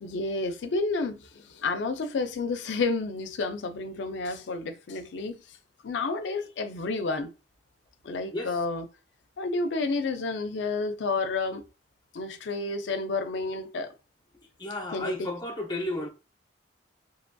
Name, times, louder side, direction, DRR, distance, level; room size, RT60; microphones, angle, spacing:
voice 1, 0.0-5.4 5.8-7.3 8.0-8.9 9.4-11.6 12.1-13.9 14.9-15.3, left 3 dB, 85° left, 0.4 m, -30 dB
voice 2, 14.6-16.1, left 1 dB, 25° left, 0.6 m, -33 dB
2.8 x 2.6 x 2.2 m
head